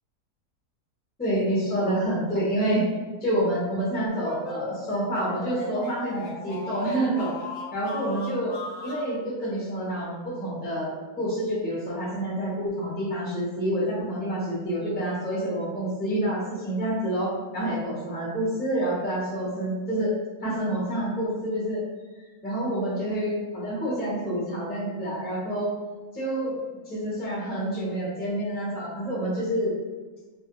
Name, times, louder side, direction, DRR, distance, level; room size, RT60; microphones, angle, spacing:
voice 1, 1.2-2.8 3.2-7.3 7.7-8.6 8.8-20.1 20.4-21.8 22.4-25.7 26.1-26.5 26.9-29.7, right 1 dB, 10° left, -7 dB, 0.5 m, -28 dB
sound 1, 4.1-9.1, left 2 dB, 65° left, 0.9 m, -37 dB
2.5 x 2.5 x 2.9 m, 1.3 s
omnidirectional pair, 1.7 m